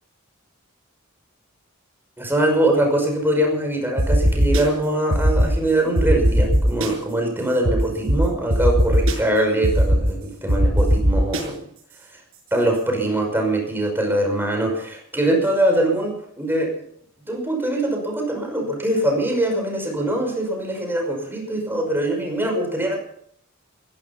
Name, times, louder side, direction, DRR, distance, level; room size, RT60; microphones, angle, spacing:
voice 1, 2.2-11.6 12.5-16.7 17.3-23.0, right 1 dB, 10° right, 2 dB, 5.6 m, -22 dB
sound 1, 4.0-4.6 5.1-5.5 6.0-6.9 7.6-7.7 8.1-8.2 8.5-9.1 9.6-10.0 10.5-11.4, equal, 85° right, 6.2 m, -18 dB
15.5 x 15.5 x 5.8 m, 0.67 s
head